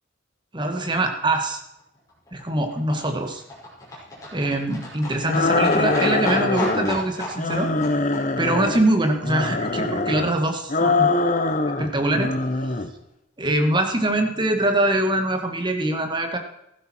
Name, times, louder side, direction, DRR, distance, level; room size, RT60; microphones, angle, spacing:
voice 1, 0.5-1.6 2.3-3.4 4.3-7.7 8.4-11.1 11.8-12.3 13.4-16.4, right 1 dB, 25° right, 5 dB, 1.8 m, -23 dB
Livestock farm animals working animals, 1.8-10.0 10.3-10.4 10.6-10.7 10.9-11.0 11.2-11.3 11.5-11.6 11.8-11.9 12.1-12.2 12.5-12.6, left 1 dB, 15° left, 5.8 m, -36 dB
sound 1, 5.3-7.0 7.4-8.8 9.2-10.3 10.7-11.9 12.1-12.9, left 3 dB, 40° left, 1.1 m, -23 dB
15.0 x 12.0 x 4.5 m, 0.83 s
head